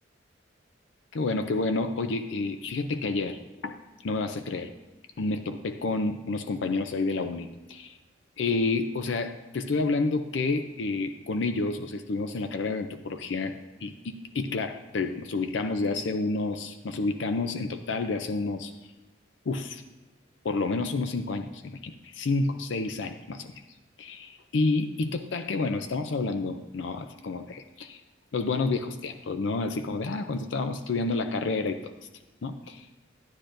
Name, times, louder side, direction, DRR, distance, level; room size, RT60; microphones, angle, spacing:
voice 1, 1.1-4.7 5.2-8.0 8.4-13.5 13.8-18.7 19.5-19.8 20.4-23.5 24.0-28.0 28.3-31.9 32.4-32.9, left 3 dB, 75° left, 8 dB, 0.5 m, -29 dB
12.0 x 10.0 x 2.6 m, 1.1 s
head